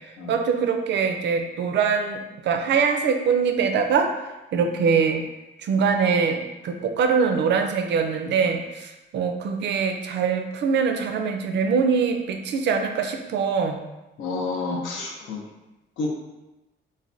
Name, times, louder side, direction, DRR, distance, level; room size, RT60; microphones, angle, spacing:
voice 1, 0.3-4.1 4.5-5.2 5.6-13.8, right 6 dB, 60° right, 5 dB, 0.4 m, -23 dB
voice 2, 14.2-15.4 16.0-16.1, left 3 dB, 75° left, -1 dB, 0.6 m, -29 dB
3.2 x 2.2 x 2.5 m, 1.0 s
cardioid pair, 90°, 20 cm